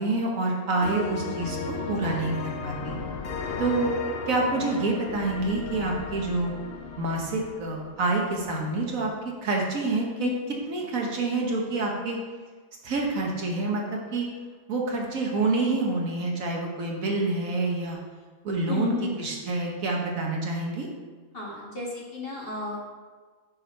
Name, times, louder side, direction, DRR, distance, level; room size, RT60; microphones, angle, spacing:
voice 1, 0.0-3.0 3.6-3.9 4.3-6.5 7.0-9.1 9.4-10.3 10.7-12.2 12.8-13.8 14.1-14.3 14.7-18.0 18.4-20.9, right 2 dB, 70° right, -1 dB, 1.5 m, -27 dB
sound 1, 0.8-8.4, left 4 dB, 60° left, 0.7 m, -35 dB
voice 2, 18.7-19.2 21.3-22.8, left 3 dB, 40° left, -4 dB, 1.8 m, -33 dB
6.3 x 6.2 x 4.5 m, 1.4 s
omnidirectional pair, 1.5 m